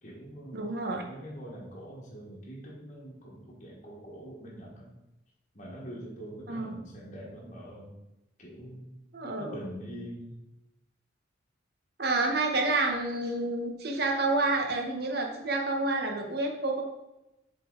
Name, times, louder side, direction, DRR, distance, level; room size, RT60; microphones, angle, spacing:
voice 1, 0.0-0.7 1.1-4.9 5.5-7.9 8.4-8.9 9.4-10.4, equal, 40° left, -4 dB, 1.3 m, -44 dB
voice 2, 0.5-1.1 6.5-6.8 9.1-9.6 12.0-16.8, right 2 dB, 55° right, 2 dB, 1.0 m, -29 dB
7.4 x 3.9 x 3.8 m, 0.93 s
head